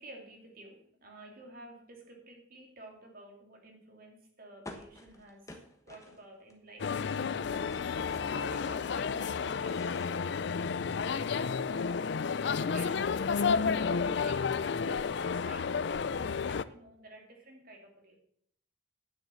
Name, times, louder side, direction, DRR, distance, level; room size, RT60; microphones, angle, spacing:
voice 1, 0.0-7.8 8.3-11.7 12.1-18.2, right 2 dB, 45° right, 1 dB, 2.7 m, -52 dB
sound 1, 4.7-6.5 6.8-8.9 9.3-10.9, left 1 dB, 15° left, 1.2 m, -51 dB
sound 2, 6.8-16.6, left 5 dB, 55° left, 0.4 m, -31 dB
9.3 x 7.3 x 7.0 m, 0.66 s
head